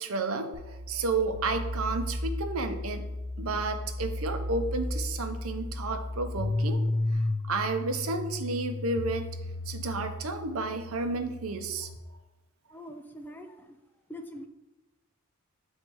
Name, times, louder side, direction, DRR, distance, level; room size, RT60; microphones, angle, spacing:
voice 1, 0.0-3.1 3.4-6.8 7.5-9.3 9.7-11.9, right 3 dB, 80° right, 7 dB, 0.6 m, -31 dB
sound 1, 0.5-12.0, left 2 dB, 70° left, 0.5 m, -34 dB
voice 2, 12.7-13.8 14.1-14.5, equal, 10° left, 5 dB, 0.4 m, -43 dB
7.8 x 3.2 x 4.5 m, 1.0 s
head